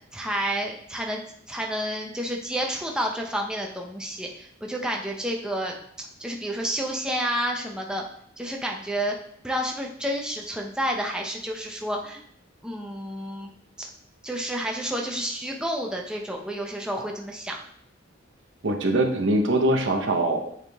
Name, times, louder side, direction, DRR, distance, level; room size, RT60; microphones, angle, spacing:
voice 1, 0.1-1.2 1.5-8.0 8.4-9.2 9.4-12.2 12.6-13.5 13.8-13.9 14.2-17.6, equal, 5° right, 0 dB, 0.7 m, -30 dB
voice 2, 18.6-20.6, right 1 dB, 70° right, 3 dB, 0.9 m, -23 dB
8.3 x 3.7 x 3.5 m, 0.64 s
head